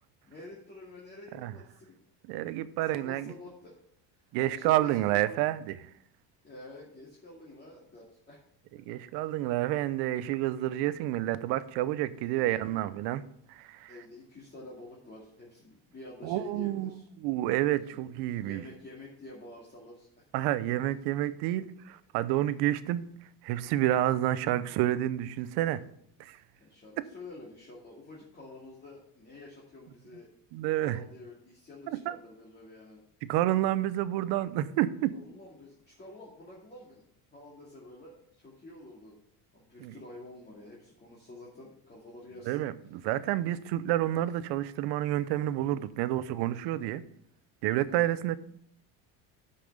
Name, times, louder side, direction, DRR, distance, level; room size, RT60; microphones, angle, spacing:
voice 1, 0.3-2.0 2.8-3.8 4.1-5.5 6.4-8.5 12.2-12.8 13.9-17.1 17.9-18.0 18.3-20.3 26.6-30.3 30.8-33.0 35.1-37.0 37.3-39.2 39.5-42.6 47.7-48.1, left 2 dB, 25° left, 2.5 m, -49 dB
voice 2, 2.3-3.3 4.3-5.7 8.9-13.2 13.5-13.9 16.2-16.9 17.2-18.6 20.3-23.0 23.4-25.8 26.2-26.4 30.5-31.0 32.1-32.2 33.3-35.1 39.8-39.9 42.5-47.0 47.6-48.4, right 14 dB, 75° right, 0.8 m, -29 dB
8.6 x 5.9 x 6.7 m
cardioid pair, 125°, 40 cm